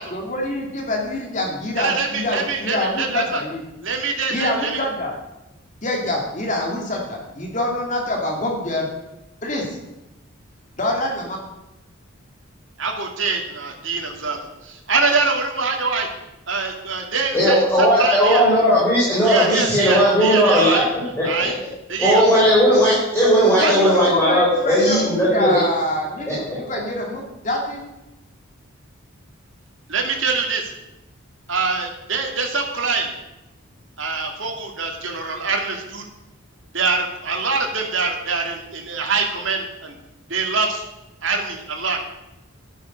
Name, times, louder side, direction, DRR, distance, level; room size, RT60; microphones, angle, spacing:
voice 1, 0.1-3.6 4.3-5.1 5.8-8.9 9.4-9.7 10.8-11.4 23.6-27.8, left 1 dB, 35° left, 1 dB, 2.6 m, -25 dB
voice 2, 1.8-3.4 3.8-4.9 12.8-14.4 14.6-16.1 16.5-18.4 19.2-20.9 21.2-21.5 21.9-22.2 23.6-24.0 29.9-30.7 31.5-33.1 34.0-36.0 36.7-39.9 40.3-40.8 41.2-42.0, right 4 dB, 60° right, 2 dB, 2.7 m, -24 dB
voice 3, 17.3-20.8 21.2-21.5 22.0-25.6 26.3-26.8, equal, 10° left, -8 dB, 4.6 m, -17 dB
12.5 x 10.0 x 6.8 m, 0.97 s
head